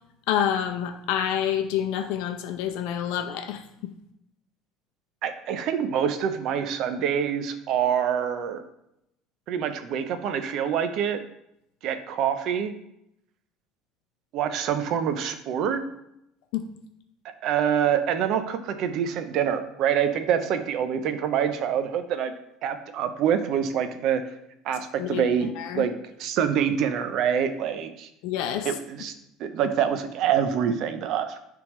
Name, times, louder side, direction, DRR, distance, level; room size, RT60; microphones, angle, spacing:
voice 1, 0.3-3.6 16.5-16.7 25.0-25.2 25.6-25.8 28.2-28.7, left 9 dB, 80° left, 5 dB, 0.6 m, -27 dB
voice 2, 5.2-8.6 9.5-11.2 11.8-12.7 14.3-15.8 17.4-22.3 22.6-24.2 24.6-25.9 26.2-28.1 28.6-29.1 29.4-31.4, right 8 dB, 55° right, 9 dB, 0.6 m, -26 dB
10.0 x 3.5 x 3.1 m, 0.79 s
cardioid pair, 145°, 0 cm